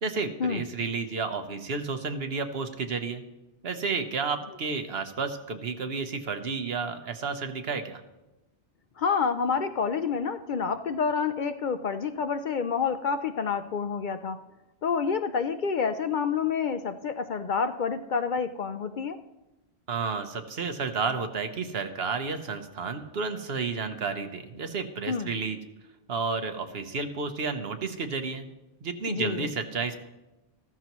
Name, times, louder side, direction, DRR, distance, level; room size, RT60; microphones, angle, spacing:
voice 1, 0.0-3.2 3.6-8.0 19.9-25.6 26.1-28.5 28.8-30.0, right 4 dB, 70° right, 7 dB, 1.2 m, -31 dB
voice 2, 9.0-14.4 14.8-19.2 25.1-25.3 29.1-29.5, left 6 dB, 55° left, 10 dB, 0.6 m, -28 dB
14.0 x 13.5 x 3.0 m, 0.99 s
omnidirectional pair, 1.1 m